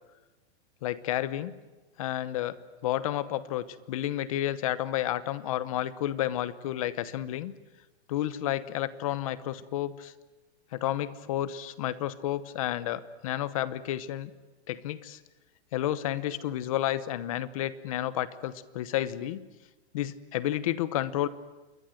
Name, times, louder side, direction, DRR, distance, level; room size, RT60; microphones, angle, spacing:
voice 1, 0.8-1.5 2.0-7.5 8.1-10.1 10.7-14.3 14.7-15.2 15.7-19.4 19.9-21.3, left 13 dB, 30° left, 16 dB, 0.9 m, -31 dB
28.0 x 22.0 x 7.8 m, 1.1 s
supercardioid pair, 175°, 34 cm